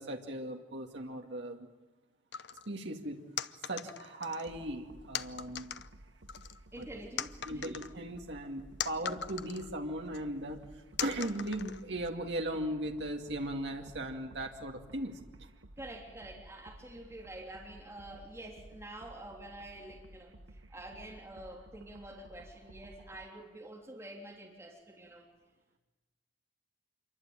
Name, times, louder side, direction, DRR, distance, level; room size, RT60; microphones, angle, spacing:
voice 1, 0.0-1.6 2.7-3.2 3.7-5.7 6.8-6.9 7.5-10.6 11.0-15.2, right 1 dB, 65° right, 2 dB, 2.4 m, -37 dB
sound 1, 2.3-2.7 3.4-4.5 5.1-5.9 6.3-6.8 7.2-9.7 10.1-10.2 11.0-12.1, left 9 dB, 65° left, 0.9 m, -40 dB
sound 2, 4.5-23.3, right 1 dB, 80° right, 1.3 m, -55 dB
voice 2, 6.7-7.8 15.8-20.3 20.7-25.3, right 1 dB, 15° right, -1 dB, 3.5 m, -47 dB
26.5 x 23.5 x 9.0 m, 1.1 s
head